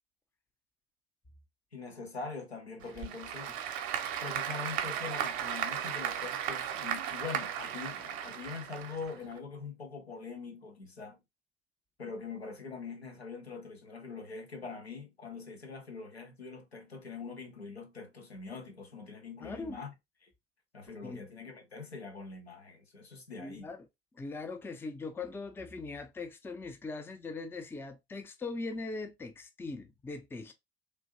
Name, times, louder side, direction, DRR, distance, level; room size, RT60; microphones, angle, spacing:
voice 1, 1.7-3.5 4.2-11.2 12.0-19.9 20.2-20.3 20.7-23.7, left 5 dB, 90° left, 0.7 m, -43 dB
Applause / Crowd, 2.8-9.4, right 9 dB, 50° right, 0.6 m, -36 dB
voice 2, 19.4-19.8 21.0-21.2 23.4-23.8 24.1-30.5, left 3 dB, 5° left, 0.4 m, -40 dB
3.2 x 2.5 x 2.6 m
figure-of-eight pair, 60°, 31 cm